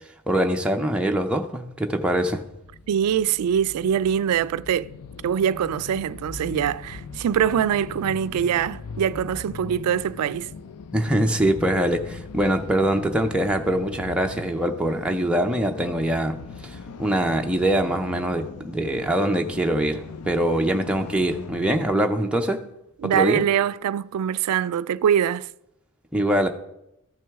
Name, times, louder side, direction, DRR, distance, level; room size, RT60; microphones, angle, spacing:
voice 1, 0.3-2.4 10.9-16.4 16.6-22.6 23.0-23.4 26.1-26.5, right 1 dB, 5° right, 0.5 m, -23 dB
sound 1, 2.5-21.9, left 4 dB, 85° left, 0.5 m, -40 dB
voice 2, 2.9-4.9 5.2-10.5 23.0-25.5, right 9 dB, 80° right, 0.3 m, -23 dB
14.0 x 6.1 x 3.5 m
head